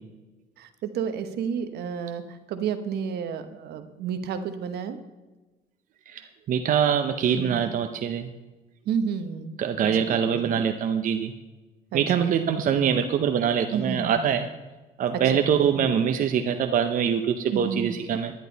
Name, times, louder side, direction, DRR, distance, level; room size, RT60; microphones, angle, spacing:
voice 1, 0.6-5.0 7.4-7.7 8.8-9.6 10.0-10.5 11.9-12.5 13.7-14.2 15.1-15.9 17.5-18.0, right 7 dB, 75° right, 9 dB, 1.1 m, -31 dB
voice 2, 6.1-8.3 9.6-11.3 11.9-14.5 15.0-18.3, right 8 dB, 50° right, 7 dB, 0.7 m, -24 dB
10.5 x 10.5 x 4.0 m, 1.2 s
cardioid pair, 110°, 17 cm